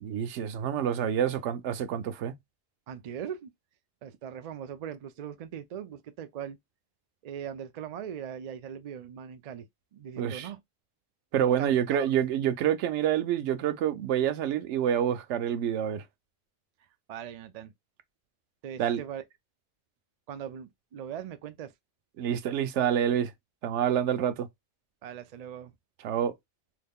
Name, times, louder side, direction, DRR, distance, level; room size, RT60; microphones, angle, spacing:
voice 1, 0.0-2.3 10.2-10.5 11.3-16.0 18.8-19.0 22.2-23.3 23.6-24.5 26.0-26.3, right 9 dB, 90° right, 0.9 m, -27 dB
voice 2, 2.9-3.5 4.0-6.6 7.2-10.6 11.6-12.1 17.1-17.7 18.6-19.2 20.3-21.7 25.0-25.7, right 9 dB, 60° right, 0.4 m, -40 dB
2.8 x 2.2 x 3.5 m
omnidirectional pair, 1.2 m